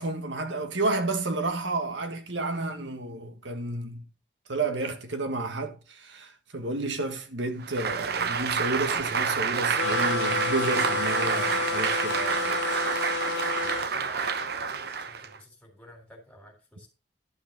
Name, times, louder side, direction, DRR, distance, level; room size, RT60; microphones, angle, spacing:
voice 1, 0.0-4.0 4.5-12.5 12.8-13.0, right 2 dB, 85° right, 1.6 m, -31 dB
Applause, 7.6-15.4, right 6 dB, 60° right, 0.9 m, -28 dB
sound 1, 9.7-13.9, left 5 dB, 75° left, 0.6 m, -30 dB
voice 2, 13.7-16.9, left 1 dB, 5° left, 3.5 m, -50 dB
11.5 x 5.7 x 5.2 m
head